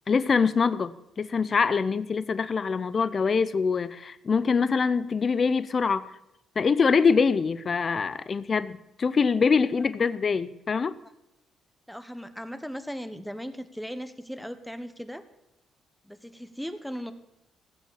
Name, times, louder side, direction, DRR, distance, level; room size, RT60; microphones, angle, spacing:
voice 1, 0.1-6.1 6.6-11.0, left 5 dB, 40° left, 15 dB, 0.6 m, -24 dB
voice 2, 11.9-15.2 16.0-17.1, equal, ahead, 11 dB, 1.2 m, -37 dB
16.5 x 7.4 x 7.3 m, 0.86 s
cardioid pair, 90°, 0 cm